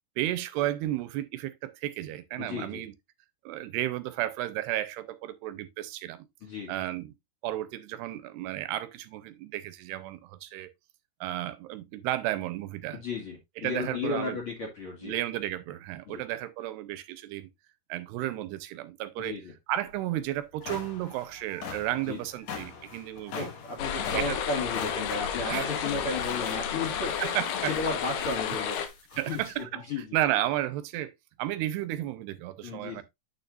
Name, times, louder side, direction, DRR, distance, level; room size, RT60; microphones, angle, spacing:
voice 1, 0.2-2.9 3.5-6.3 6.7-7.1 7.4-10.7 11.2-13.0 13.6-14.4 15.0-17.5 17.9-19.4 19.7-23.5 24.2-24.4 25.5-25.7 27.2-27.8 29.2-29.9 30.1-31.1 31.4-33.0, right 14 dB, 90° right, 2.8 m, -33 dB
voice 2, 2.4-2.8 6.4-6.8 12.9-15.1 16.1-16.2 19.2-19.5 22.1-22.3 23.3-27.2 27.7-30.1 32.6-33.0, left 3 dB, 40° left, 2.4 m, -34 dB
sound 1, 19.9-20.0 20.4-29.6, left 6 dB, 60° left, 2.1 m, -44 dB
sound 2, 23.8-28.9, left 8 dB, 80° left, 3.2 m, -31 dB
9.1 x 6.7 x 2.5 m
omnidirectional pair, 4.8 m